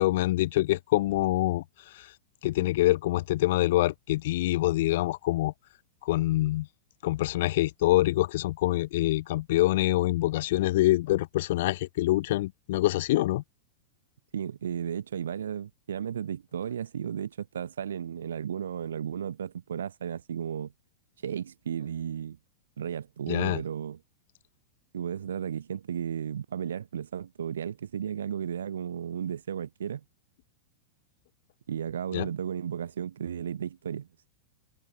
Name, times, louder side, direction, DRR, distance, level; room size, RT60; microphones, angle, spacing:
voice 1, 0.0-1.6 1.9-2.1 2.4-5.5 6.0-6.7 7.0-13.4 23.3-23.6 32.1-32.3, left 16 dB, 60° left, 0.4 m, -25 dB
voice 2, 14.3-20.7 21.2-22.4 22.8-24.0 24.9-30.0 31.7-34.3, right 8 dB, 75° right, 1.3 m, -34 dB
hypercardioid pair, 105°, 0 cm